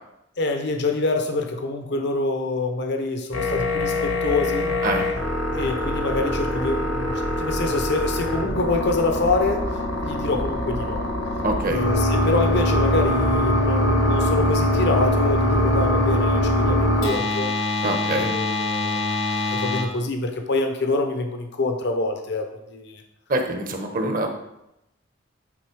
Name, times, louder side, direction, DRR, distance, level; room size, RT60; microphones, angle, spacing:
voice 1, 0.4-4.7 5.6-9.7 10.0-11.1 11.6-17.6 18.2-23.0, left 2 dB, 55° left, 4 dB, 0.8 m, -26 dB
sound 1, 3.3-19.8, left 1 dB, 90° left, 1.8 m, -23 dB
voice 2, 11.4-11.8 17.8-18.3 23.3-24.3, right 2 dB, 45° right, 4 dB, 1.1 m, -24 dB
9.7 x 4.2 x 4.7 m, 0.86 s
head